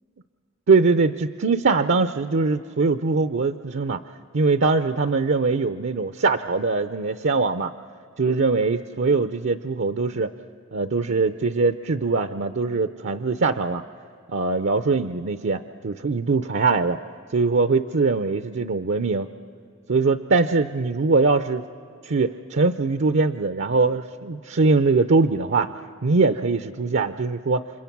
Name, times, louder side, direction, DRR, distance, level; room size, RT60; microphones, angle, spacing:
voice 1, 0.7-4.0 4.3-7.7 8.2-10.3 10.7-13.8 14.3-17.0 17.3-19.3 19.9-21.6 22.0-25.7 26.0-27.6, right 4 dB, 60° right, 11 dB, 0.6 m, -22 dB
29.5 x 26.0 x 6.0 m, 2.5 s
head